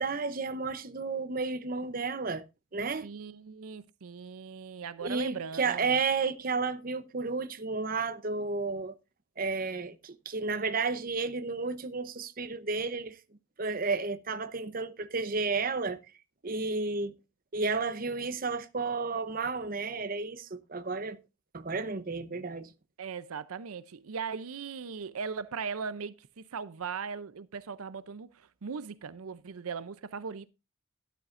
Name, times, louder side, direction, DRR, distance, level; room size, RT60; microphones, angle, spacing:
voice 1, 0.0-2.4 2.7-3.1 5.0-8.9 9.4-13.2 13.6-16.0 16.4-17.1 17.5-21.2 21.5-22.7, right 4 dB, 40° right, 0.8 m, -32 dB
voice 2, 3.0-6.0 23.0-30.5, right 6 dB, 90° right, 0.6 m, -39 dB
12.5 x 11.5 x 2.5 m
head